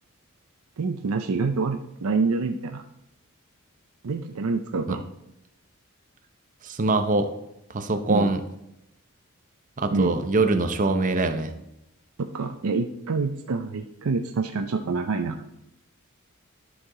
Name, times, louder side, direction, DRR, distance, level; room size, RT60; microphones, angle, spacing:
voice 1, 0.8-2.8 4.0-5.0 8.1-8.3 9.9-10.2 12.2-15.4, right 4 dB, 80° right, 5 dB, 0.5 m, -27 dB
voice 2, 6.6-7.3 7.7-8.4 9.8-11.5, right 2 dB, 35° right, 8 dB, 0.7 m, -23 dB
12.5 x 4.8 x 3.7 m, 0.85 s
head